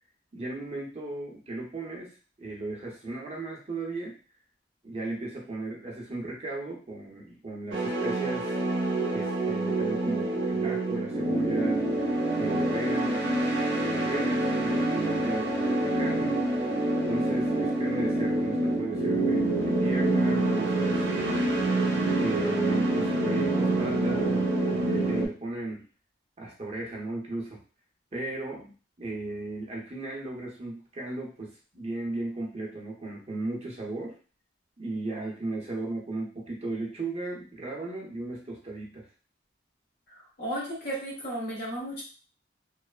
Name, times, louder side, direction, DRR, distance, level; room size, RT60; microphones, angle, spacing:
voice 1, 0.3-4.2 4.8-8.6 9.1-11.8 12.3-13.2 13.8-16.4 17.0-21.5 22.1-25.9 26.4-27.6 28.1-34.2 34.8-39.1, right 2 dB, 35° right, -2 dB, 0.7 m, -36 dB
sound 1, 7.7-25.3, right 2 dB, 80° right, 0.6 m, -26 dB
voice 2, 40.4-42.0, right 1 dB, 60° left, -5 dB, 1.2 m, -33 dB
3.1 x 2.0 x 2.3 m, 0.37 s
head